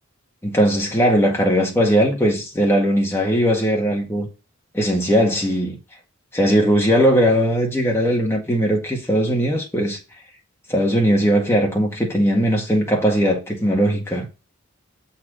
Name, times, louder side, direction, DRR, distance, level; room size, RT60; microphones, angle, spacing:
voice 1, 0.4-4.3 4.7-5.8 6.3-10.0 10.7-14.3, equal, 10° left, 1.8 m, -19 dB
7.3 x 4.3 x 5.0 m
head